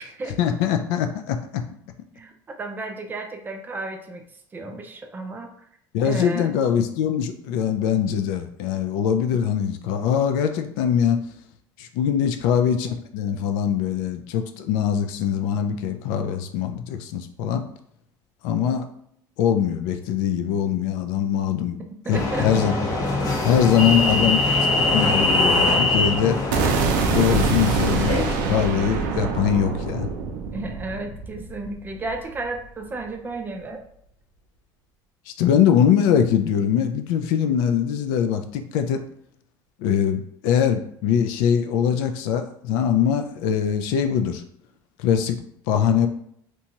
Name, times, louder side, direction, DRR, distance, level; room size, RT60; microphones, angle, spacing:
voice 1, 0.4-1.6 5.9-11.2 11.8-17.6 18.4-18.9 19.4-21.8 22.1-22.8 23.4-24.5 24.9-26.4 27.1-28.1 28.4-30.1 35.3-39.0 39.8-44.4 45.0-45.4 45.7-46.1, left 8 dB, 80° left, 7 dB, 0.4 m, -22 dB
voice 2, 2.6-4.2 4.5-5.5 6.0-6.5 12.2-12.3 22.0-22.5 23.7-23.9 30.5-33.8, right 2 dB, 20° right, 4 dB, 0.4 m, -33 dB
sound 1, 22.1-28.3, left 2 dB, 35° left, 0.9 m, -22 dB
sound 2, 26.5-32.6, right 4 dB, 90° right, 0.5 m, -25 dB
2.8 x 2.2 x 2.9 m, 0.70 s
supercardioid pair, 115°, 10 cm